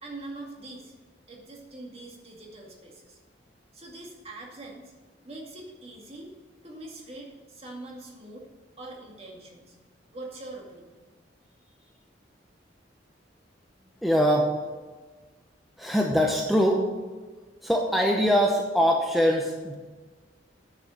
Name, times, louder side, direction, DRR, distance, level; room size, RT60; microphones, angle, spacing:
voice 1, 0.0-0.9 1.3-3.2 3.7-4.9 5.2-6.3 6.6-8.5 8.8-9.8 10.1-11.0 11.7-11.9, right 2 dB, 35° right, -1 dB, 2.2 m, -43 dB
voice 2, 14.0-14.6 15.8-16.9 17.6-19.7, equal, ahead, 0 dB, 0.8 m, -23 dB
9.6 x 6.6 x 7.6 m, 1.3 s
head